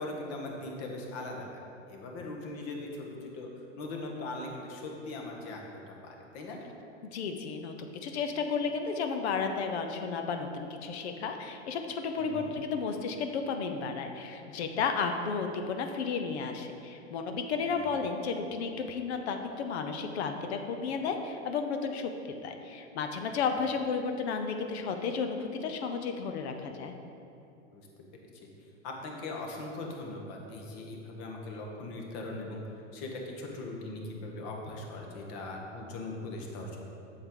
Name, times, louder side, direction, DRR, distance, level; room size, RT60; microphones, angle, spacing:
voice 1, 0.0-1.6 1.9-3.5 3.8-6.6 12.2-12.5 17.7-17.9 27.7-27.9 28.2-28.3 28.8-32.6 32.9-36.9, left 2 dB, 45° left, 0 dB, 1.5 m, -40 dB
voice 2, 7.1-27.0, left 5 dB, 65° left, 6 dB, 0.9 m, -33 dB
7.8 x 6.6 x 3.9 m, 2.7 s
hypercardioid pair, 110°, 36 cm